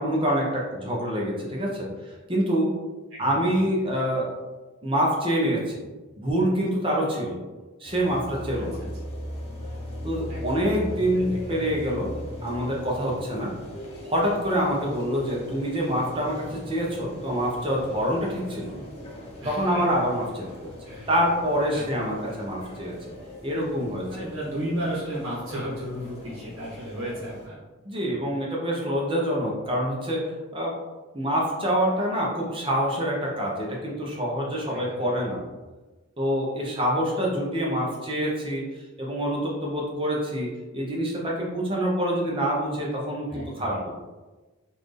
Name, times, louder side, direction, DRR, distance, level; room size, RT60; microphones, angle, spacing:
voice 1, 0.0-2.7 3.2-4.3 4.8-5.8 6.2-7.4 7.8-8.8 10.0-12.1 12.4-13.5 14.0-18.8 19.4-20.7 21.1-22.9 23.4-24.0 27.8-30.2 30.5-30.8 31.1-35.4 36.2-38.6 39.0-40.5 40.7-43.9, equal, 25° right, -2 dB, 0.7 m, -26 dB
voice 2, 3.1-3.5 8.8-8.9 10.3-11.4 19.4-19.8 20.8-21.1 21.7-21.8 22.2-22.4 24.1-27.6 34.7-35.2 43.3-43.8, right 1 dB, 60° right, -6 dB, 1.0 m, -34 dB
sound 1, 7.8-27.5, equal, 30° left, 0.8 m, -39 dB
4.0 x 2.5 x 3.3 m, 1.2 s
head